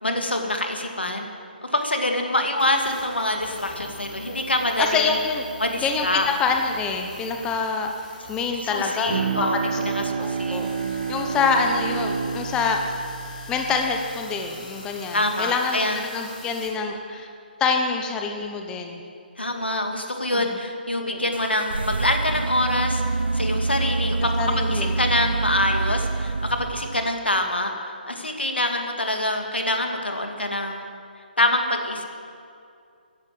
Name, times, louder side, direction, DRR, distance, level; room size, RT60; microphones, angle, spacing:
voice 1, 0.0-1.3 1.6-5.1 5.6-6.3 8.6-10.6 15.1-16.0 19.4-23.0 23.3-30.9 31.4-32.0, left 1 dB, 85° left, 4 dB, 2.4 m, -25 dB
sound 1, 2.6-16.7, left 3 dB, 45° left, 4.4 m, -43 dB
voice 2, 4.8-5.4 5.8-7.9 8.3-9.8 10.2-10.7 11.1-12.8 13.5-17.3 17.6-19.0 20.3-20.5 24.4-25.0, left 5 dB, 15° left, 3 dB, 1.0 m, -26 dB
Bowed string instrument, 9.1-14.5, right 6 dB, 45° right, 1.2 m, -29 dB
sound 2, 21.3-27.2, right 3 dB, 75° right, 0.5 m, -26 dB
14.5 x 11.0 x 7.7 m, 2.4 s
figure-of-eight pair, 140°, 6 cm